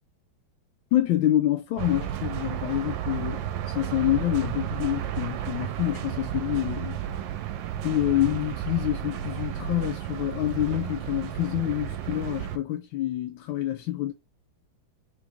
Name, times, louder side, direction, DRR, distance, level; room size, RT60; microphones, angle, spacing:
voice 1, 0.9-7.1 7.8-14.1, left 14 dB, 90° left, 1.4 m, -27 dB
sound 1, 1.8-12.6, right 11 dB, 75° right, 1.2 m, -32 dB
3.9 x 3.0 x 3.5 m
omnidirectional pair, 2.1 m